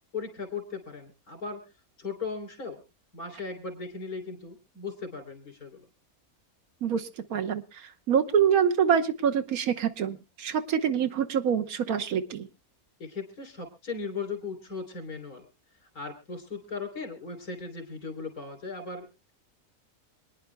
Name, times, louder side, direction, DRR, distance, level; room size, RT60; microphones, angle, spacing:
voice 1, 0.1-1.6 2.0-2.8 3.1-5.9 13.0-15.5 15.8-19.3, left 4 dB, 80° left, 3 dB, 3.6 m, -37 dB
voice 2, 6.8-7.6 8.1-12.5, right 8 dB, 80° right, 6 dB, 1.5 m, -25 dB
26.5 x 10.0 x 2.2 m, 0.26 s
omnidirectional pair, 1.5 m